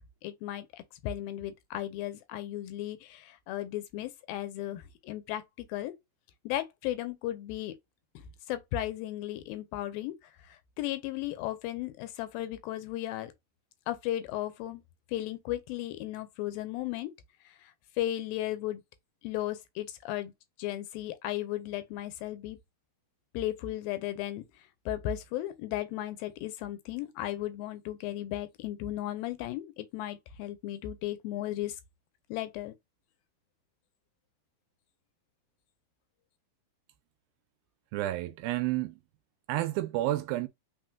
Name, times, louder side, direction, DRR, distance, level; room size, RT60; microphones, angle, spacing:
voice 1, 0.2-5.9 6.5-7.7 8.5-10.1 10.8-13.3 13.9-14.8 15.1-17.1 18.0-18.8 19.2-20.3 20.6-22.6 23.3-24.4 24.9-31.7 32.3-32.7, left 13 dB, 85° left, 2.5 m, -35 dB
voice 2, 37.9-39.0 39.5-40.5, right 15 dB, 85° right, 2.4 m, -30 dB
5.6 x 3.7 x 2.3 m
omnidirectional pair, 4.2 m